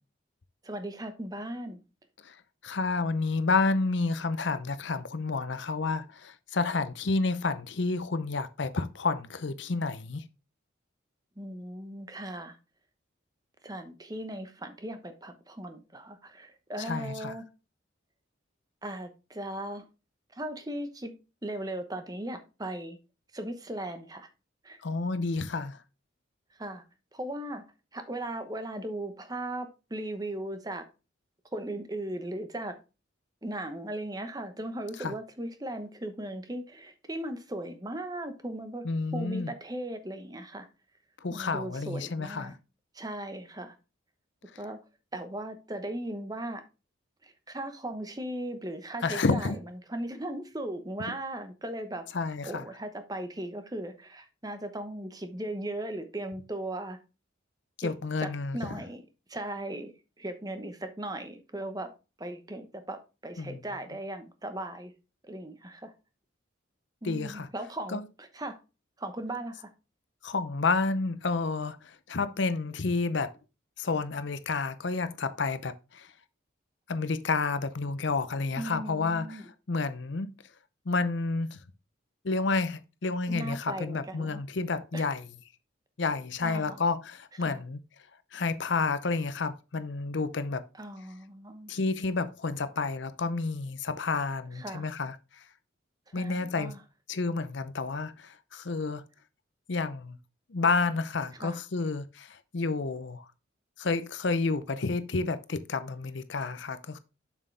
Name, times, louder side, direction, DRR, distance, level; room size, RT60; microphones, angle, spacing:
voice 1, 0.6-1.8 11.4-12.6 13.6-17.4 18.8-19.8 20.3-21.1 21.4-23.0 23.3-24.3 24.6-24.8 26.5-26.8 27.1-27.6 27.9-30.8 31.5-32.7 33.4-38.8 39.1-40.7 41.3-42.5 42.9-43.8 44.6-44.8 45.1-46.6 47.2-49.6 49.9-52.0 52.4-57.0 57.8-57.9 58.2-59.0 59.3-59.9 60.2-61.9 62.2-64.9 65.2-65.9 67.0-68.6 69.0-69.7 78.6-79.4 83.3-84.4 84.9-85.0 86.4-86.8 87.4-87.6 90.8-91.7 94.5-94.9 96.1-96.8 101.3-101.6, right 1 dB, 20° right, 0.9 m, -37 dB
voice 2, 2.6-10.2 16.8-17.3 24.8-25.8 35.0-35.1 38.8-39.5 41.2-42.5 49.0-49.6 52.1-52.6 57.8-58.8 63.4-63.6 67.0-67.5 67.9-68.0 70.2-73.3 73.8-76.1 76.9-80.3 80.9-81.6 82.2-85.2 86.0-87.8 88.3-90.6 91.7-95.2 96.1-96.7 97.1-99.0 99.7-100.2 100.5-103.2 103.8-107.0, left 3 dB, 65° left, 0.6 m, -30 dB
7.4 x 6.3 x 3.3 m
head